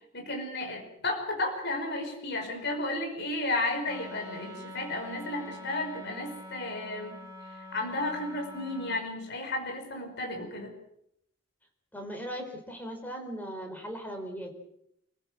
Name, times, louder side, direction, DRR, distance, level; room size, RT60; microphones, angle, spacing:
voice 1, 0.1-7.2 7.6-10.7, left 2 dB, 55° left, 3 dB, 5.4 m, -33 dB
Wind instrument woodwind instrument, 3.8-9.1, left 1 dB, 15° right, 4.8 m, -45 dB
voice 2, 11.9-14.6, equal, 10° left, 4 dB, 4.4 m, -38 dB
28.5 x 15.5 x 7.8 m, 0.78 s
head